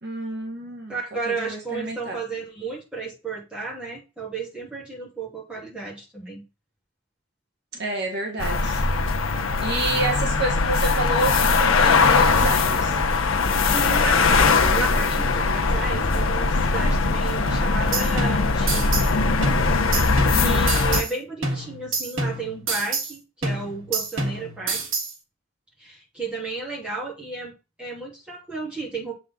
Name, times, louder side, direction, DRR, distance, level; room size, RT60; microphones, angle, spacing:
voice 1, 0.0-1.0 1.3-2.2 7.7-8.8 9.6-13.0 20.3-20.6, right 2 dB, 55° right, 1 dB, 1.6 m, -29 dB
voice 2, 0.9-6.4 13.7-19.1 20.3-24.8 25.8-27.5 27.8-29.1, right 4 dB, 5° right, -5 dB, 3.0 m, -33 dB
sound 1, 8.4-21.0, left 4 dB, 85° left, 0.9 m, -20 dB
sound 2, 17.5-19.1 19.4-21.1 21.4-23.1 23.4-25.1, right 3 dB, 75° right, 1.9 m, -28 dB
7.4 x 4.2 x 3.8 m, 0.28 s
head